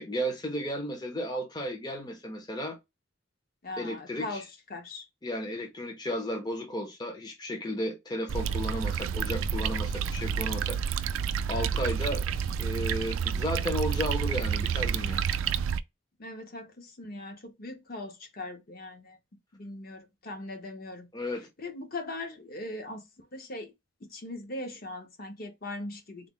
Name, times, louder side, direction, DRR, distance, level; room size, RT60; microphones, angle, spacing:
voice 1, 0.0-2.8 3.8-4.4 5.2-11.1 11.5-12.2 12.6-15.2 21.1-21.5, equal, 20° left, 0.6 m, -34 dB
voice 2, 3.6-5.1 16.2-19.2 19.5-21.1 21.6-23.7 24.0-26.3, left 2 dB, 50° left, 0.9 m, -40 dB
sound 1, 8.3-15.8, right 7 dB, 90° right, 0.3 m, -29 dB
3.6 x 2.0 x 3.6 m
head